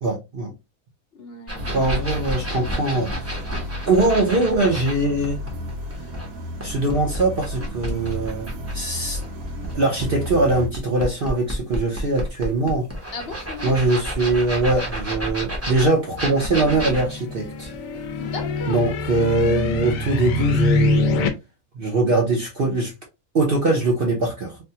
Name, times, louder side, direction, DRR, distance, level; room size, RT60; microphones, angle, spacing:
voice 1, 0.0-0.5 1.7-3.4 3.9-5.4 6.6-9.2 9.7-12.9 13.6-17.7 18.7-21.1 21.7-22.9 23.3-24.6, right 2 dB, 50° right, 0.8 m, -22 dB
voice 2, 1.1-1.7 13.1-13.8 18.2-19.3, left 3 dB, 55° left, 0.7 m, -36 dB
sound 1, 1.5-4.9 5.2-8.8 9.1-18.8 19.1-19.2, equal, 15° right, 0.7 m, -31 dB
sound 2, 1.6-10.7, left 1 dB, 85° right, 1.1 m, -33 dB
sound 3, 16.3-21.3, left 2 dB, 75° left, 1.0 m, -24 dB
3.3 x 2.2 x 2.7 m
omnidirectional pair, 1.5 m